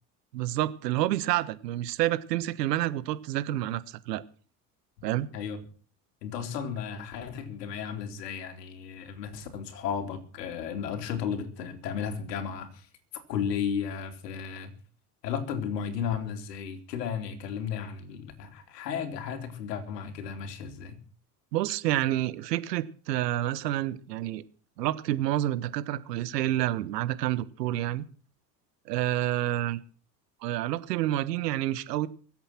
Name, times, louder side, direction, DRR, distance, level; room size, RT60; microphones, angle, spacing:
voice 1, 0.3-4.2 5.0-5.3 21.5-24.4 24.8-28.0 28.9-29.8 30.4-32.1, right 14 dB, 80° right, 1.3 m, -28 dB
voice 2, 6.2-14.7 15.2-21.0, left 7 dB, 80° left, 3.2 m, -34 dB
23.0 x 8.2 x 6.0 m
hypercardioid pair, 80°, 48 cm